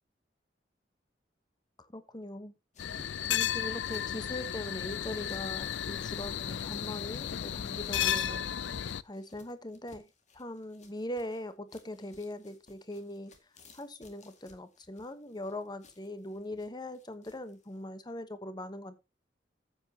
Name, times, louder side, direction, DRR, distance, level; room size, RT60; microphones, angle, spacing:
voice 1, 1.8-2.5 3.3-8.5 9.0-10.1 10.3-13.3 13.7-19.0, left 1 dB, 25° left, 1.1 m, -41 dB
sound 1, 2.7-17.8, left 3 dB, 40° left, 2.2 m, -61 dB
sound 2, 2.8-9.0, left 9 dB, 75° left, 0.5 m, -34 dB
13.5 x 8.3 x 2.9 m
head